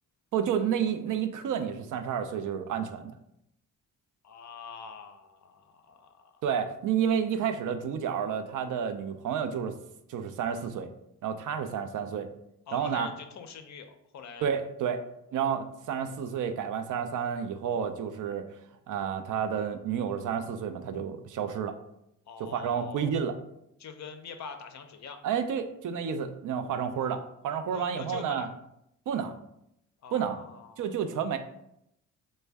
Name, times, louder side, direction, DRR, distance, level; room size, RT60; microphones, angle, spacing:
voice 1, 0.3-3.1 6.4-9.8 10.1-10.9 11.2-12.3 12.7-13.1 14.4-15.0 15.3-18.4 18.9-21.8 22.4-23.4 25.2-28.5 29.1-29.3 30.1-30.4 30.8-31.4, right 7 dB, 55° right, 9 dB, 0.5 m, -30 dB
voice 2, 4.2-6.4 12.7-14.5 22.3-23.2 23.8-25.2 27.7-28.5 30.0-30.9, left 6 dB, 50° left, 7 dB, 0.5 m, -44 dB
3.2 x 2.1 x 3.3 m, 0.80 s
supercardioid pair, 60°, 37 cm